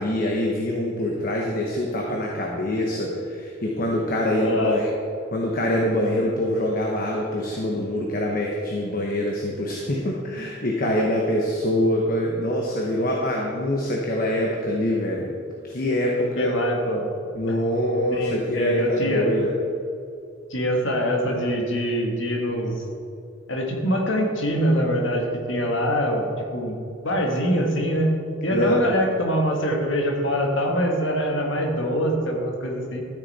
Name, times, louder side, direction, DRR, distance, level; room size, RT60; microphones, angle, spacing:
voice 1, 0.0-4.9 5.3-15.4 15.6-16.5 17.3-19.5 28.5-28.8, left 1 dB, 50° left, -1 dB, 1.1 m, -24 dB
voice 2, 4.3-4.8 16.3-17.1 18.1-19.3 20.5-22.8 23.5-26.7 27.0-28.1 28.4-33.0, equal, 85° left, 1 dB, 1.6 m, -24 dB
13.0 x 6.6 x 4.2 m, 2.5 s
head